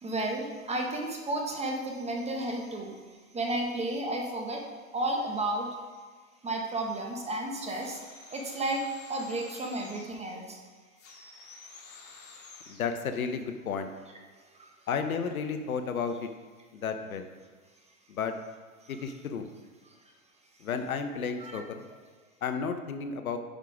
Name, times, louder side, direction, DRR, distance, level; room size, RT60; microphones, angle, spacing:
voice 1, 0.0-3.0 3.3-5.7 6.4-8.0 8.3-10.6 14.5-14.7 18.8-18.9 21.4-21.6, right 1 dB, 15° right, 1 dB, 1.5 m, -32 dB
sound 1, 7.6-10.2 11.0-12.9, left 3 dB, 35° left, 2.9 m, -50 dB
voice 2, 12.7-13.9 14.9-16.3 16.7-17.3 18.1-18.3 18.9-19.5 20.6-21.8 22.4-23.4, left 6 dB, 75° left, 7 dB, 1.0 m, -32 dB
9.1 x 5.7 x 4.9 m, 1.4 s
hypercardioid pair, 105°, 42 cm